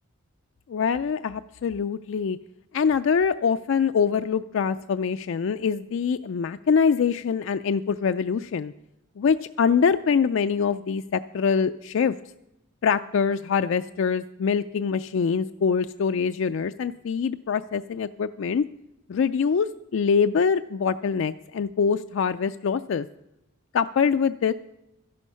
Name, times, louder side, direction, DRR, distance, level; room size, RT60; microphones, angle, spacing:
voice 1, 0.7-2.4 2.7-8.7 9.2-12.1 12.8-18.6 19.1-23.1 23.7-24.5, left 6 dB, 60° left, 9 dB, 0.3 m, -24 dB
13.0 x 11.0 x 5.5 m, 0.89 s
head